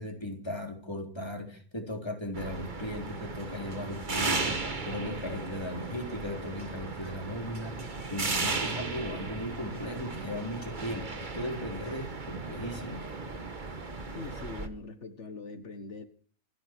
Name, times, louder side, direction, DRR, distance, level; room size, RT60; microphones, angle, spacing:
voice 1, 0.0-13.1, left 1 dB, 20° left, 4.0 m, -37 dB
sound 1, 2.3-14.7, right 3 dB, 40° right, 1.8 m, -36 dB
voice 2, 14.1-16.0, left 3 dB, 80° left, 1.9 m, -42 dB
27.5 x 10.0 x 4.6 m
omnidirectional pair, 1.2 m